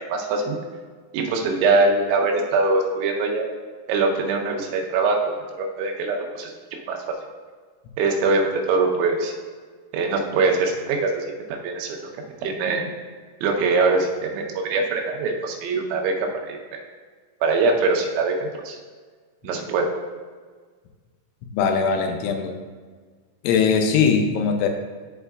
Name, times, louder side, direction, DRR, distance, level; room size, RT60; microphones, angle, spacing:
voice 1, 0.1-0.6 1.1-3.5 3.9-5.2 5.6-7.0 8.0-9.3 9.9-11.2 11.6-12.0 12.4-12.9 13.4-16.8 17.4-18.3 18.6-18.8 19.4-19.9, right 3 dB, 90° right, 1 dB, 3.2 m, -22 dB
voice 2, 21.5-22.5 23.4-24.7, left 6 dB, 90° left, 5 dB, 3.1 m, -20 dB
11.5 x 4.5 x 2.3 m, 1.5 s
omnidirectional pair, 5.3 m